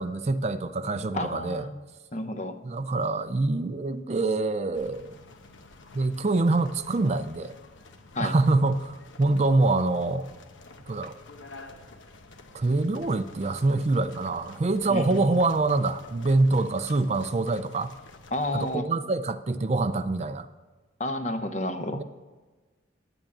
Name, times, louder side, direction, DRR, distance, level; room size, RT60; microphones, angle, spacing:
voice 1, 0.0-1.7 2.6-5.1 5.9-7.5 8.2-10.3 10.9-11.1 12.5-17.9 18.5-20.5 21.9-22.0, right 2 dB, 35° right, 11 dB, 0.4 m, -25 dB
voice 2, 1.1-1.8 2.1-2.6 8.1-8.3 14.9-15.3 18.3-18.8 21.0-22.0, left 1 dB, 35° left, 9 dB, 0.7 m, -30 dB
sound 1, 4.7-18.8, left 3 dB, 80° left, 1.0 m, -50 dB
9.8 x 9.0 x 7.2 m, 1.3 s
head